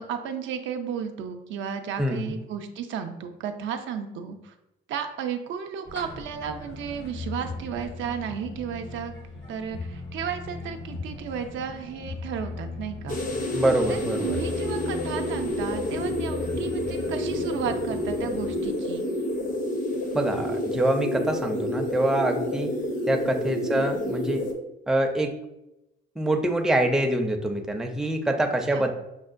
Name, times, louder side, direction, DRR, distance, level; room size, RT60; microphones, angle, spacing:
voice 1, 0.0-4.5 4.9-9.1 9.5-13.6 13.9-19.1 23.7-23.9 28.7-28.9, right 7 dB, 75° right, 6 dB, 0.4 m, -34 dB
voice 2, 2.0-2.3 13.5-14.4 20.1-22.7 23.1-24.4 24.9-25.3 26.2-28.9, right 1 dB, 5° right, 3 dB, 0.4 m, -25 dB
sound 1, 5.8-18.7, left 3 dB, 65° left, 1.2 m, -38 dB
sound 2, 13.1-24.5, left 1 dB, 45° left, 0.7 m, -29 dB
6.1 x 2.1 x 2.5 m, 0.91 s
cardioid pair, 90°, 20 cm